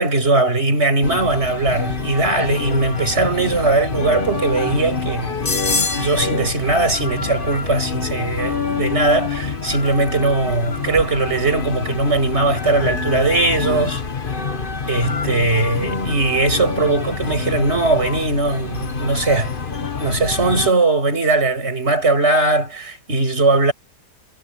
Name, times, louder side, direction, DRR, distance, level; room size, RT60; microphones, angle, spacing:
voice 1, 0.0-5.3 5.9-14.0 14.9-19.5 20.0-23.7, right 2 dB, 35° right, 6.4 m, -19 dB
sound 1, 1.0-20.7, left 4 dB, 30° left, 1.5 m, -26 dB
omnidirectional pair, 1.9 m